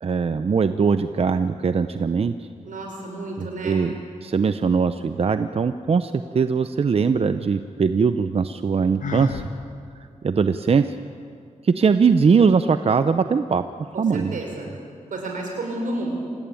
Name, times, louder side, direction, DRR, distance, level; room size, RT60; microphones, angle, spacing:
voice 1, 0.0-2.5 3.4-4.0 4.2-9.4 10.2-10.9 11.6-13.6 14.0-14.4, right 5 dB, 50° right, 10 dB, 0.7 m, -21 dB
voice 2, 2.6-3.8 13.9-14.7 15.1-16.1, right 2 dB, 85° right, 1 dB, 6.2 m, -31 dB
Sigh, 9.0-9.5, left 3 dB, 75° left, 2.0 m, -29 dB
26.5 x 18.5 x 9.1 m, 2.3 s
wide cardioid pair, 110°, 13 cm